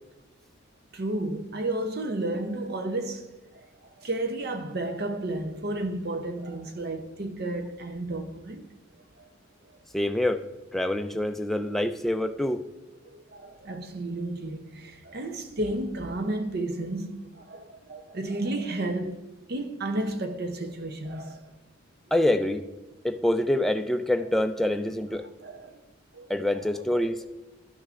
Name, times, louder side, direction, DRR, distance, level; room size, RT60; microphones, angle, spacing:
voice 1, 0.9-3.7 4.0-8.6 9.2-9.3 13.0-21.5 25.4-25.8 26.1-26.3 26.7-27.0, right 2 dB, 50° right, 0.7 m, -32 dB
voice 2, 9.9-10.5 10.7-12.7 22.1-22.6 23.0-25.3 26.3-27.3, left 1 dB, ahead, 0.3 m, -26 dB
12.0 x 6.3 x 2.5 m
head